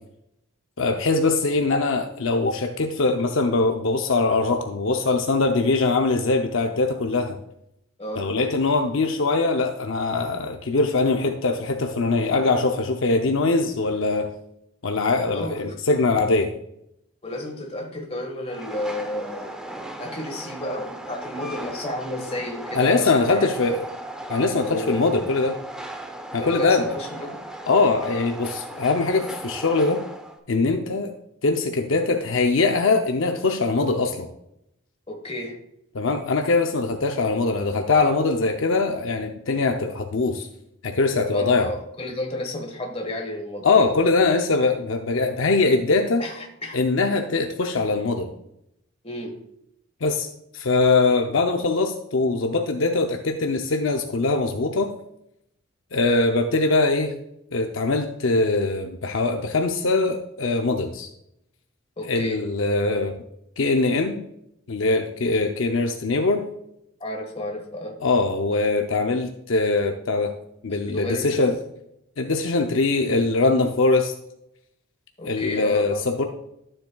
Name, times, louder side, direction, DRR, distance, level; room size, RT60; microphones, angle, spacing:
voice 1, 0.8-7.4 8.2-14.3 14.8-16.5 22.7-23.7 24.3-25.6 26.3-26.9 27.7-30.0 30.5-31.1 31.4-34.3 35.9-40.5 40.8-41.7 43.6-46.3 46.7-48.3 50.0-54.9 55.9-57.1 57.5-61.1 62.1-63.2 63.6-64.2 64.7-66.4 68.0-70.3 70.6-71.5 72.2-74.1 75.2-76.3, left 3 dB, 70° left, 5 dB, 0.6 m, -22 dB
voice 2, 8.0-8.3 15.3-15.8 17.2-19.6 20.0-23.8 24.6-25.0 26.4-27.4 35.1-35.6 41.3-43.9 46.2-46.8 49.0-49.4 62.0-62.4 67.0-68.0 70.7-71.5 75.2-76.0, left 1 dB, 30° left, 2 dB, 1.5 m, -32 dB
Train, 18.5-30.4, right 1 dB, 5° right, 0.6 m, -37 dB
12.0 x 7.4 x 2.3 m, 0.79 s
head